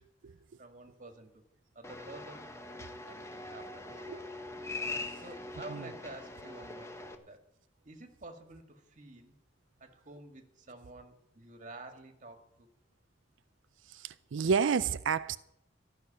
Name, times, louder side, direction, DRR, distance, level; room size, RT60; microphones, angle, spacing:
voice 1, 0.0-1.4 1.8-2.5 3.0-4.3 5.2-7.4 7.8-9.3 9.8-12.7, right 2 dB, 40° right, 1.9 m, -50 dB
sound 1, 1.8-7.1, left 2 dB, 15° left, 1.1 m, -42 dB
voice 2, 13.9-15.4, right 6 dB, 85° right, 0.5 m, -30 dB
14.0 x 6.5 x 9.9 m
head